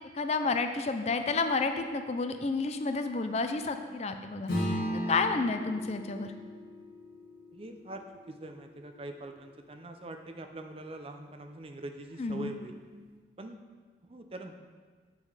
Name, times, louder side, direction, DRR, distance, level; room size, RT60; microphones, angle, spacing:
voice 1, 0.1-4.8 5.1-6.3 12.2-12.5, left 3 dB, 35° left, 7 dB, 0.4 m, -30 dB
Acoustic guitar / Strum, 4.5-9.3, equal, 60° left, 1.9 m, -37 dB
voice 2, 7.5-12.8 13.4-13.6 14.0-14.5, right 2 dB, 30° right, 6 dB, 0.5 m, -43 dB
8.0 x 5.4 x 4.8 m, 1.5 s
head